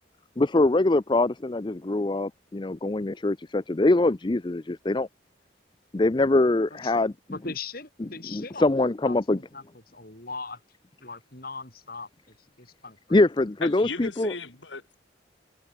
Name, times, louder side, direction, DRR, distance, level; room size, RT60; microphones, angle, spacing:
voice 1, 0.4-5.1 5.9-7.1 8.3-9.4 13.1-14.3, left 2 dB, 25° left, 0.5 m, -23 dB
voice 2, 7.3-9.6 9.9-10.6 11.0-13.2, left 4 dB, 50° left, 6.4 m, -40 dB
voice 3, 13.6-15.0, left 4 dB, 80° left, 5.6 m, -36 dB
head